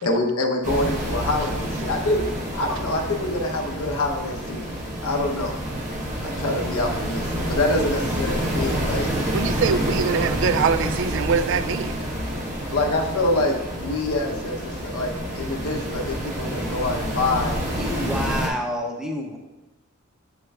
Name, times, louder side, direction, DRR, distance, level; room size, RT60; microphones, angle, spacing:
voice 1, 0.0-2.2 2.5-5.5 6.2-9.1 12.7-17.6, left 2 dB, 90° left, 0.9 m, -26 dB
sound 1, 0.6-18.5, equal, 35° right, 1.1 m, -28 dB
voice 2, 9.3-12.0, right 6 dB, 60° right, 0.3 m, -23 dB
voice 3, 17.8-19.4, equal, 5° right, 0.7 m, -28 dB
8.2 x 6.0 x 2.4 m
head